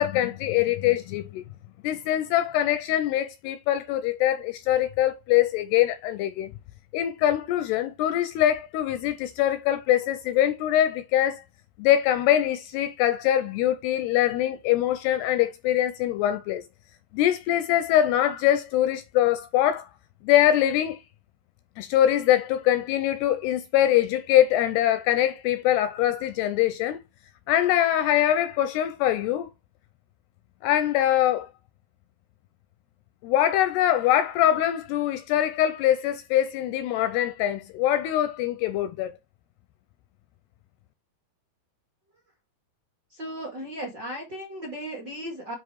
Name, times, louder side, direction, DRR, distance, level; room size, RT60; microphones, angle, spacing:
voice 1, 0.0-1.4 1.8-6.5 6.9-11.4 11.8-16.6 17.1-19.9 20.2-21.0 21.8-27.0 27.5-29.5 30.6-31.5 33.2-39.2, left 12 dB, 85° left, 2.4 m, -23 dB
voice 2, 43.1-45.5, equal, 50° right, 1.3 m, -36 dB
9.7 x 3.7 x 4.7 m
omnidirectional pair, 5.3 m